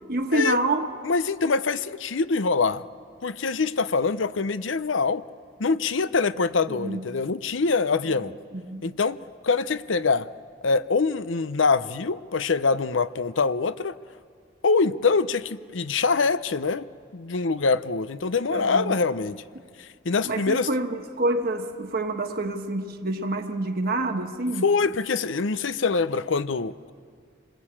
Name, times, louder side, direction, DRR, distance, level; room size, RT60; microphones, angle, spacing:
voice 1, 0.1-0.9 6.7-7.0 8.0-8.9 18.5-18.9 20.3-24.7, right 2 dB, 55° right, 1.3 m, -27 dB
voice 2, 1.0-2.8 3.2-5.2 5.6-8.3 8.8-9.2 9.4-10.3 10.6-13.9 14.6-19.4 19.8-20.7 24.6-26.9, left 4 dB, 80° left, 0.7 m, -24 dB
28.0 x 21.0 x 8.8 m
head